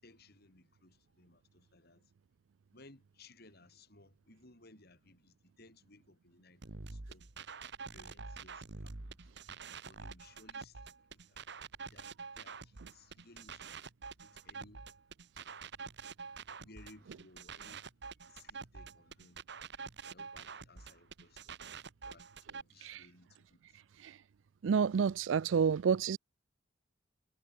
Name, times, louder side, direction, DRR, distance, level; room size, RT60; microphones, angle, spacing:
voice 1, 0.0-2.1 2.7-6.6 6.9-7.3 7.9-11.4 11.9-13.7 14.2-14.9 16.6-17.9 18.3-19.4 20.1-21.6 22.0-23.8, left 2 dB, 60° left, 6.6 m, -61 dB
sound 1, 6.6-22.6, right 5 dB, 65° right, 1.6 m, -47 dB
voice 2, 24.6-26.2, right 6 dB, 85° right, 0.4 m, -29 dB
head